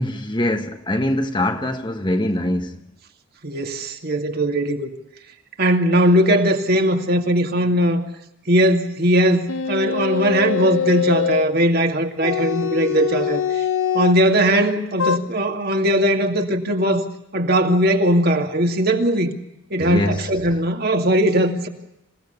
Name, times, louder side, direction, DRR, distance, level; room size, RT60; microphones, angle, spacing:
voice 1, 0.0-2.8 19.8-20.3, left 1 dB, 20° left, 1.3 m, -23 dB
voice 2, 3.4-4.9 5.6-8.0 8.5-13.6 13.9-17.0 17.3-19.3 19.7-21.7, right 1 dB, 45° right, 2.4 m, -19 dB
sound 1, 9.5-11.5 12.2-14.2 15.0-15.2, left 8 dB, 70° left, 0.8 m, -23 dB
27.5 x 17.0 x 8.2 m
head